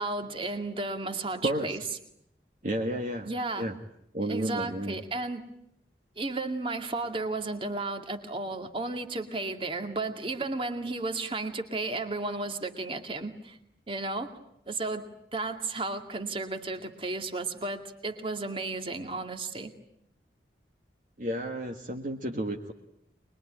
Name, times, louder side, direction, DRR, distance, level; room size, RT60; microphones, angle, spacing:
voice 1, 0.0-1.8 3.2-3.7 4.3-5.4 6.2-13.6 13.9-14.4 14.7-19.7, right 3 dB, 30° right, 6 dB, 2.3 m, -33 dB
voice 2, 1.4-1.8 2.6-3.3 3.6-3.8 4.1-5.0 21.2-22.7, right 1 dB, 45° right, 2 dB, 1.7 m, -31 dB
24.5 x 22.0 x 10.0 m, 0.75 s
head